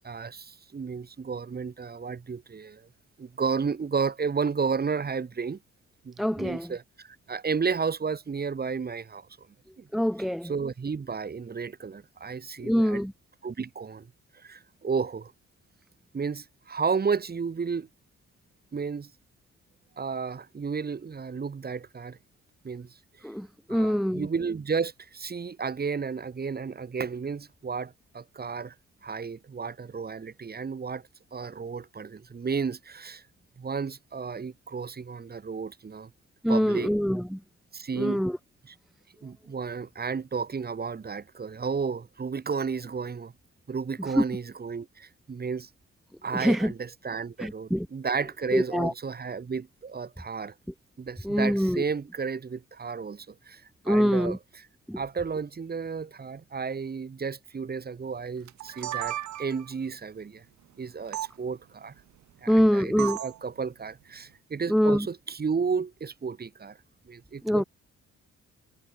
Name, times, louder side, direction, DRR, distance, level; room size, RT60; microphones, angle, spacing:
voice 1, 0.0-2.9 3.2-5.6 6.0-9.3 9.8-9.9 10.4-13.0 13.4-14.1 14.3-15.3 16.1-17.9 18.7-19.1 20.0-22.2 22.6-23.0 23.7-28.7 29.0-31.0 31.3-33.2 33.6-36.1 36.5-36.9 37.7-38.2 38.6-38.7 39.2-43.3 43.7-45.7 46.2-50.5 51.0-54.6 55.0-60.4 60.8-61.9 62.4-66.8 67.1-67.6, right 5 dB, 30° right, 1.8 m, -32 dB
voice 2, 6.2-6.7 9.9-10.5 12.6-13.1 23.2-24.3 36.4-37.4 38.0-38.4 44.2-44.3 46.3-46.7 47.4-47.9 48.5-48.9 51.2-51.8 53.9-54.4 54.9-55.0 62.5-63.2 64.7-65.1 67.4-67.6, equal, ahead, 0.4 m, -24 dB
sound 1, 58.5-59.7 61.1-61.3 63.0-63.4, right 12 dB, 70° right, 1.3 m, -34 dB
cardioid pair, 90°, 30 cm